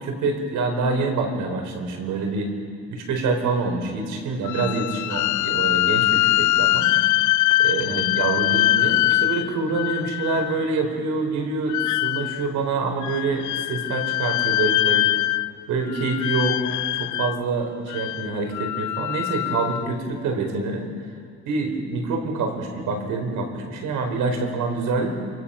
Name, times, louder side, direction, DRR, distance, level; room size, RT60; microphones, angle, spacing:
voice 1, 0.0-2.5 2.9-6.9 7.6-15.1 15.7-20.9 21.4-25.1, right 3 dB, 85° right, 4 dB, 4.5 m, -26 dB
sound 1, 4.4-10.7 11.7-12.5 13.0-15.6 15.9-17.4 17.9-19.9, left 15 dB, 75° left, 0.5 m, -23 dB
28.5 x 25.0 x 5.8 m, 2.3 s
cardioid pair, 90°, 30 cm